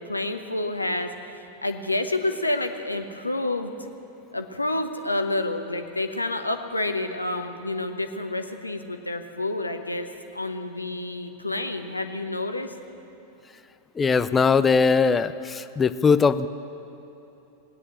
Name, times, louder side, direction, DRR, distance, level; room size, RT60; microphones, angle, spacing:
voice 1, 0.0-3.7 4.3-10.1 10.3-12.7, left 2 dB, 85° left, 7 dB, 1.0 m, -29 dB
voice 2, 14.0-16.5, left 5 dB, 15° left, 14 dB, 0.4 m, -20 dB
17.5 x 9.8 x 8.5 m, 3.0 s
figure-of-eight pair, 90°, 0 cm